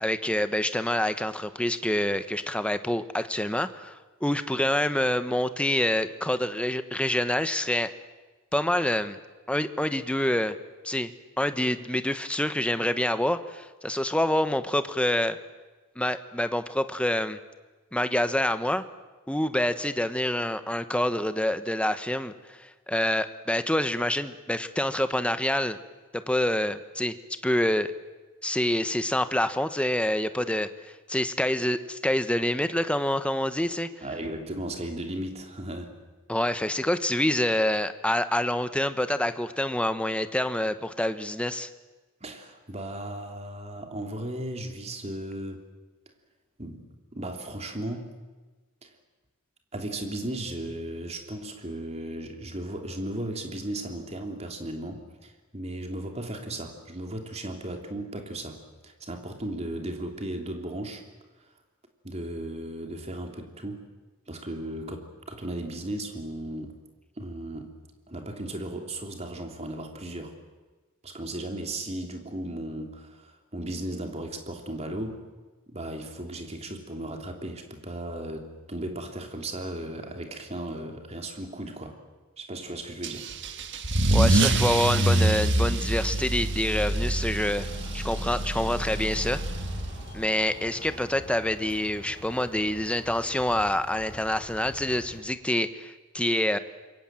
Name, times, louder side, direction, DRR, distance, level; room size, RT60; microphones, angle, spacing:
voice 1, 0.0-7.9 8.5-9.2 9.5-10.6 10.8-11.1 11.4-15.4 16.0-17.4 17.9-18.8 19.3-25.8 26.1-27.2 27.4-27.9 28.4-33.9 36.3-41.7 84.1-87.7 87.9-89.4 90.1-96.6, left 1 dB, 5° left, 11 dB, 1.1 m, -27 dB
voice 2, 34.0-35.9 42.2-45.6 46.6-48.1 48.8-48.9 49.7-61.0 62.0-63.9 64.3-66.8 67.2-67.7 68.1-70.4 71.0-75.2 75.7-82.0 82.4-83.3, right 1 dB, 30° right, 4 dB, 3.2 m, -36 dB
Car / Engine starting / Accelerating revving vroom, 83.0-90.2, right 1 dB, 55° right, 1.6 m, -26 dB
sound 1, 86.1-95.2, left 1 dB, 40° left, 4.9 m, -45 dB
27.0 x 23.5 x 7.7 m, 1.3 s
head